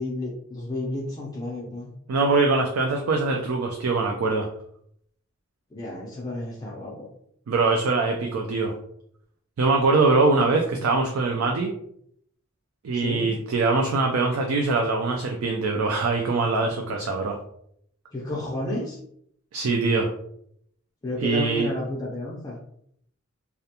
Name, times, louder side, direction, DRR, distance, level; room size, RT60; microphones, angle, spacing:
voice 1, 0.0-1.9 5.7-7.1 10.7-10.9 12.9-13.3 18.1-19.0 21.0-22.6, left 1 dB, 20° left, -4 dB, 0.4 m, -32 dB
voice 2, 2.1-4.5 7.5-8.7 9.6-11.7 12.8-17.4 19.5-20.1 21.2-21.7, right 3 dB, 85° right, 1 dB, 0.4 m, -23 dB
2.3 x 2.1 x 2.8 m, 0.68 s
head